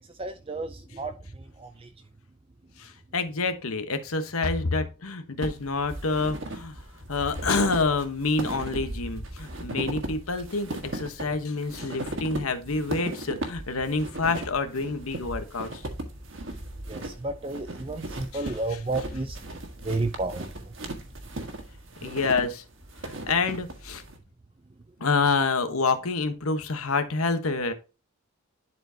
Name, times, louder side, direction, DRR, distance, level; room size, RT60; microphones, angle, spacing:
voice 1, 0.2-1.2 1.6-1.9 16.9-19.4 19.8-20.4, right 2 dB, 25° right, 0.5 m, -31 dB
voice 2, 2.8-6.8 7.1-15.8 18.3-18.5 22.0-22.6 23.0-24.0 25.0-27.7, left 3 dB, 90° left, 1.2 m, -27 dB
sound 1, 5.4-24.2, right 1 dB, 65° right, 1.5 m, -37 dB
11.0 x 4.5 x 2.8 m
head